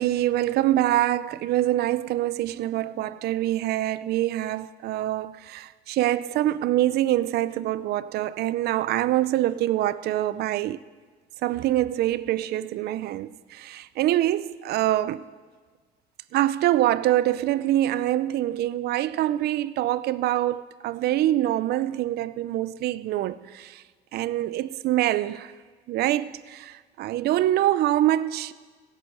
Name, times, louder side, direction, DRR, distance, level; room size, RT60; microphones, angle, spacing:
voice 1, 0.0-10.8 11.4-15.2 16.3-23.8 24.1-25.5 25.9-28.5, right 14 dB, 70° right, 0.5 m, -25 dB
17.0 x 9.8 x 6.4 m
cardioid pair, 110°, 17 cm